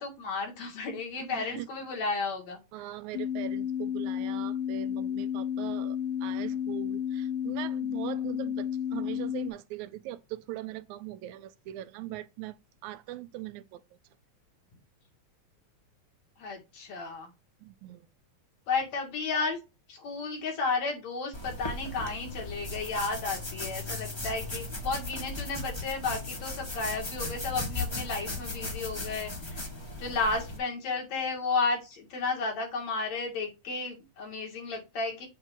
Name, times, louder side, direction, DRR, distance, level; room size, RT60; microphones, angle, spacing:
voice 1, 0.0-2.6 16.4-17.3 18.7-19.6 19.9-29.6 30.0-35.3, left 4 dB, 70° left, 3.3 m, -33 dB
voice 2, 1.1-1.7 2.7-12.6 12.8-13.8 17.6-18.1, right 14 dB, 85° right, 2.0 m, -41 dB
sound 1, 3.1-9.5, left 9 dB, 85° left, 1.3 m, -32 dB
sound 2, 21.3-30.6, left 2 dB, 30° left, 0.5 m, -37 dB
7.4 x 2.7 x 5.8 m
omnidirectional pair, 3.3 m